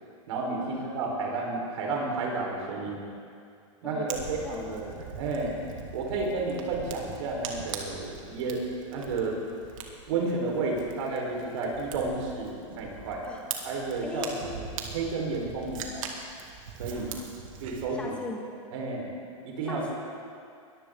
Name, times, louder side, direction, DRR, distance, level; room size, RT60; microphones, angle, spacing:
voice 1, 0.3-3.0 3.8-5.5 5.9-9.4 10.1-13.2 13.6-14.6 14.9-16.0 16.8-17.1 17.6-18.2 18.7-19.1 19.4-19.8, right 3 dB, 60° right, -1 dB, 4.6 m, -31 dB
voice 2, 3.8-5.0 13.2-13.4 14.0-14.3 16.9-17.3 17.9-18.5 19.7-19.9, left 3 dB, 5° left, -1 dB, 1.7 m, -40 dB
Fire, 4.1-17.8, right 5 dB, 75° right, 2.3 m, -41 dB
21.5 x 14.5 x 3.9 m, 2.3 s
supercardioid pair, 160°, 17 cm